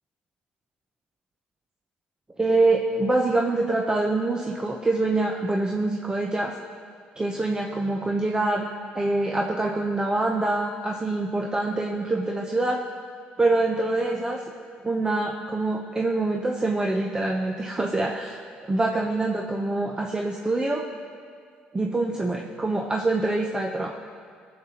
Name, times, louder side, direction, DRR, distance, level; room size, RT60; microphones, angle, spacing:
voice 1, 2.4-6.5 7.2-8.7 8.9-12.8 13.4-14.4 14.8-18.4 18.7-20.9 21.7-24.0, right 2 dB, 20° right, 1 dB, 0.9 m, -25 dB
20.0 x 7.7 x 3.0 m, 2.1 s
supercardioid pair, 65°, 4 cm